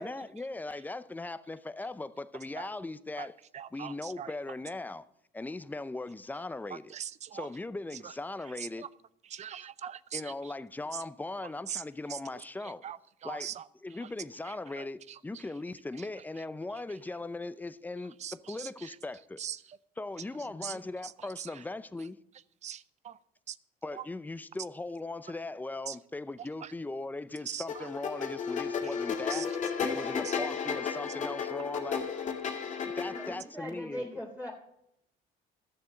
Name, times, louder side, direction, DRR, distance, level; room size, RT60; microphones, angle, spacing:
voice 1, 0.0-3.4 3.7-5.0 5.3-6.9 7.3-8.9 10.1-12.8 13.2-13.5 13.8-19.4 20.0-22.2 23.8-29.5 29.8-32.1 32.8-34.1, left 2 dB, 10° left, 0.6 m, -39 dB
voice 2, 3.5-4.3 6.9-7.5 8.0-8.1 8.8-8.9 9.3-10.3 11.7-11.8 12.1-12.2 12.8-13.6 14.0-14.1 14.5-15.4 18.2-19.0 19.4-19.6 20.6-20.8 21.0-21.1 21.4-21.5 22.6-23.2 23.5-23.6 23.9-24.0 25.9-26.0 26.6-26.7 27.5-27.9 29.3-29.5 30.2-30.5 32.5-32.7, right 9 dB, 45° right, 0.5 m, -41 dB
voice 3, 20.3-20.8 33.1-34.5, equal, 10° right, 3.4 m, -41 dB
sound 1, 27.7-33.3, left 6 dB, 45° left, 2.1 m, -33 dB
13.0 x 6.9 x 7.8 m
cardioid pair, 110°, 17 cm